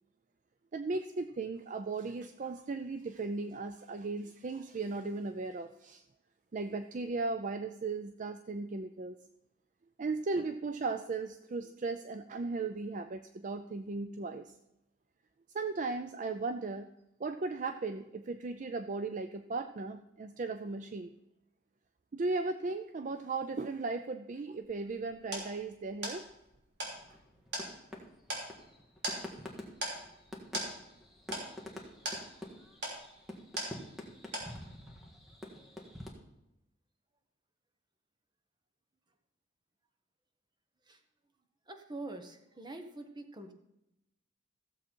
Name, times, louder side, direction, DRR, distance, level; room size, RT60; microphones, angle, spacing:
voice 1, 0.7-6.0 6.5-9.2 10.0-14.5 15.5-16.9 17.2-21.1 22.1-26.2, right 3 dB, 40° right, 9 dB, 0.4 m, -36 dB
sound 1, 24.6-34.1 34.3-34.9, right 1 dB, 60° right, 3.2 m, -41 dB
sound 2, 26.9-36.1, left 1 dB, ahead, 1.6 m, -47 dB
voice 2, 41.7-43.5, right 2 dB, 25° right, 7 dB, 1.0 m, -45 dB
15.5 x 7.3 x 4.5 m, 0.87 s
head